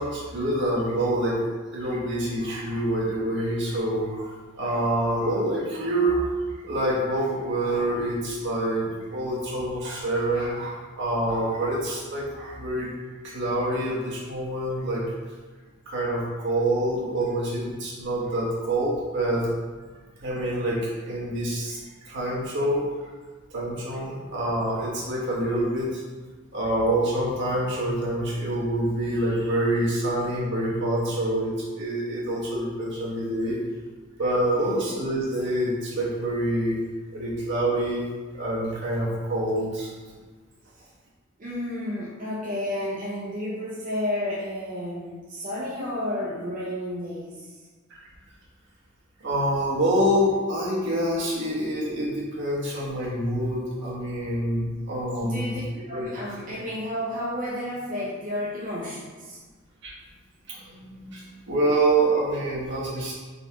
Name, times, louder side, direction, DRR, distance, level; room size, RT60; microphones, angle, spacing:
voice 1, 0.0-4.3 4.6-6.3 6.6-12.9 13.2-15.0 15.9-19.5 20.2-23.1 23.5-26.0 26.5-33.6 34.2-36.8 37.1-38.0 38.3-39.9 47.9-48.0 49.2-55.5 55.9-56.1 59.8-59.9 60.5-63.1, right 1 dB, 60° right, -5 dB, 1.1 m, -26 dB
voice 2, 34.5-35.0 41.4-47.5 55.2-55.6 55.9-59.4, left 1 dB, 40° right, -7 dB, 0.6 m, -31 dB
4.0 x 3.4 x 2.8 m, 1.4 s
head